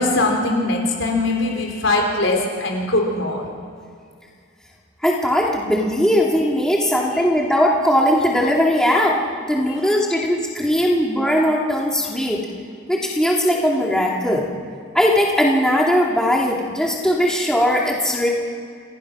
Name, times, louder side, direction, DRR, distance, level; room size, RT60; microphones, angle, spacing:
voice 1, 0.0-3.4 6.8-7.2 9.7-9.8 10.8-10.9, left 2 dB, 70° left, 1 dB, 4.6 m, -21 dB
voice 2, 5.0-9.2 9.5-12.4 12.9-14.5 14.9-18.3, equal, 5° left, -3 dB, 2.5 m, -19 dB
27.0 x 16.5 x 6.1 m, 2.2 s
head